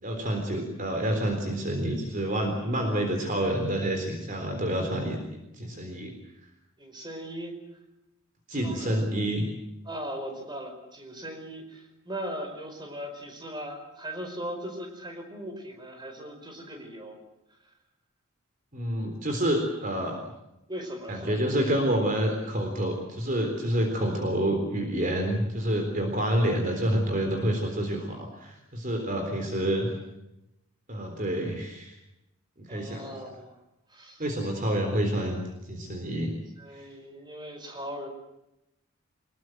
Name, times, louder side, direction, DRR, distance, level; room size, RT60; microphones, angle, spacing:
voice 1, 0.0-5.2 5.6-6.1 8.5-9.4 18.7-20.2 21.1-29.9 30.9-31.9 32.6-33.0 34.2-35.4 35.7-36.3, right 1 dB, 40° right, 4 dB, 3.8 m, -28 dB
voice 2, 6.8-7.6 8.5-9.1 9.8-17.2 20.7-21.4 29.1-29.8 32.7-33.6 33.9-34.2 36.6-38.1, equal, 20° right, 4 dB, 4.9 m, -39 dB
24.5 x 21.0 x 7.9 m, 0.88 s
head